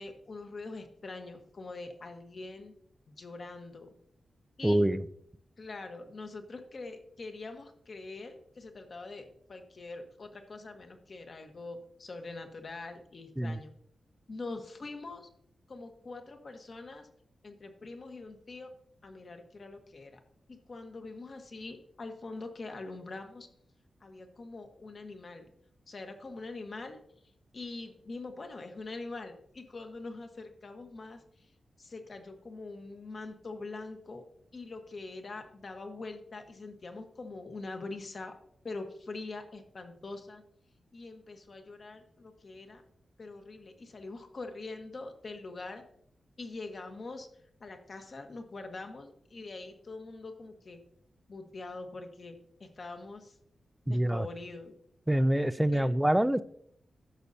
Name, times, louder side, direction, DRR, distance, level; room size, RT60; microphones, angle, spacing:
voice 1, 0.0-2.7 3.1-3.9 4.6-4.8 5.6-13.7 14.3-15.3 15.7-17.1 17.4-18.7 19.0-20.2 20.5-23.5 24.0-25.4 25.9-27.0 27.5-31.2 31.8-34.2 34.5-38.3 38.6-40.4 40.9-42.8 43.2-45.8 46.4-47.3 47.6-50.8 51.3-53.3 53.8-54.7 55.7-55.9, left 3 dB, 45° left, 5 dB, 1.3 m, -43 dB
voice 2, 4.6-5.0 13.4-13.6 53.9-54.3 55.1-56.4, right 1 dB, 10° right, 14 dB, 0.4 m, -26 dB
14.5 x 6.6 x 2.8 m, 0.68 s
wide cardioid pair, 120°, 0 cm